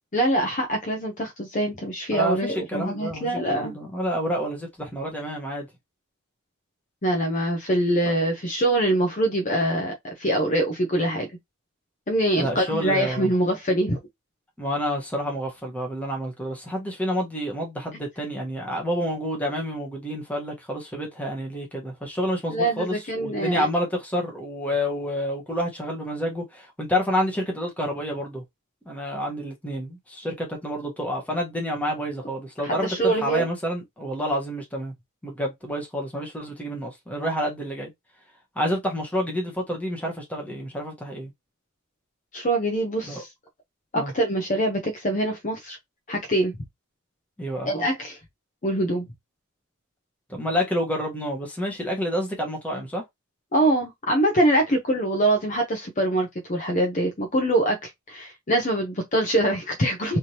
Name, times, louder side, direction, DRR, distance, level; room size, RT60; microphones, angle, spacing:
voice 1, 0.1-3.7 7.0-11.3 12.1-14.0 22.5-23.7 32.6-33.5 42.3-43.3 43.9-45.8 46.1-46.5 47.6-48.2 48.6-49.1 53.5-60.2, right 1 dB, 35° left, 0.8 m, -24 dB
voice 2, 2.1-5.7 12.4-13.3 14.6-28.4 28.9-34.9 35.2-37.9 38.5-41.3 43.0-43.2 43.9-44.1 47.4-47.7 50.3-53.0, equal, 5° left, 1.2 m, -29 dB
3.5 x 3.0 x 2.8 m
head